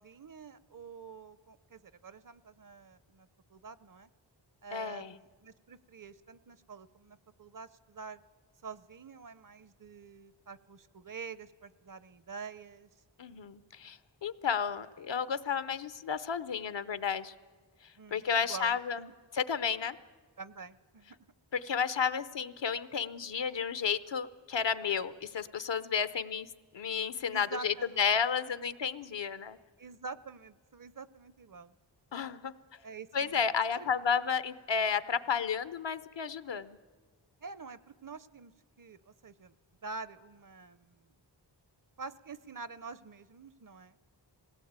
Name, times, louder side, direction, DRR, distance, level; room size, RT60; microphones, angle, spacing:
voice 1, 0.0-4.1 4.6-8.2 8.6-12.9 18.0-19.1 20.4-21.2 27.3-28.1 29.8-31.7 32.8-33.4 33.8-33.9 37.4-38.5 38.8-39.5 39.8-41.1 42.0-44.0, right 5 dB, 45° right, 17 dB, 0.7 m, -47 dB
voice 2, 4.7-5.2 13.2-17.3 17.8-19.0 19.3-20.0 21.5-26.5 26.7-29.6 32.1-32.5 33.1-36.8, left 6 dB, 70° left, 14 dB, 0.8 m, -32 dB
20.0 x 18.0 x 8.8 m, 1.4 s
wide cardioid pair, 90°, 44 cm